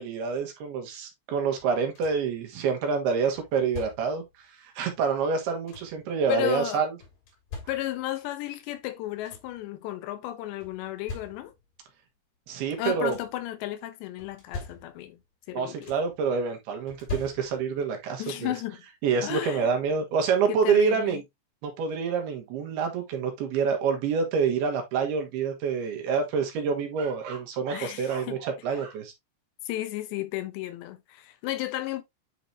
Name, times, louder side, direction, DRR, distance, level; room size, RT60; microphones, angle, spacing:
voice 1, 0.0-4.2 4.6-6.9 12.5-13.2 15.5-18.5 19.0-21.2 21.6-29.1, right 6 dB, 75° right, 3.3 m, -27 dB
sound 1, 1.6-2.4 3.3-4.3 5.2-6.1 7.0-8.2 8.8-8.9 9.1-9.7 10.6-11.8 12.7-13.5 14.2-15.2 15.5-16.2 16.9-17.9 19.2-19.3 19.8-20.0, left 3 dB, 70° left, 5.3 m, -42 dB
voice 2, 6.3-6.8 7.7-11.5 12.8-15.2 15.5-15.9 18.2-18.8 19.2-19.7 20.5-21.2 27.7-28.4 29.7-32.0, left 14 dB, 90° left, 3.1 m, -33 dB
9.3 x 3.9 x 2.7 m
omnidirectional pair, 4.9 m